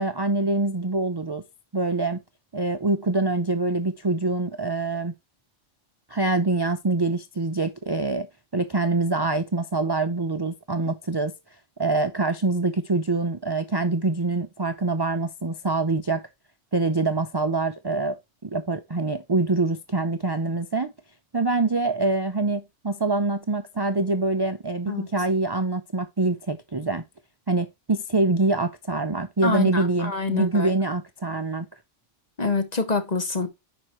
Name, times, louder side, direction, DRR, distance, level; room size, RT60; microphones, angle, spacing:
voice 1, 0.0-1.4 1.7-2.2 2.5-5.1 6.1-8.3 8.5-11.3 11.8-16.2 16.7-18.2 18.4-20.9 21.3-27.0 27.5-31.7, right 3 dB, 35° right, 0.4 m, -25 dB
voice 2, 29.4-30.7 32.4-33.5, left 3 dB, 35° left, 1.3 m, -26 dB
10.0 x 5.0 x 3.0 m
omnidirectional pair, 1.2 m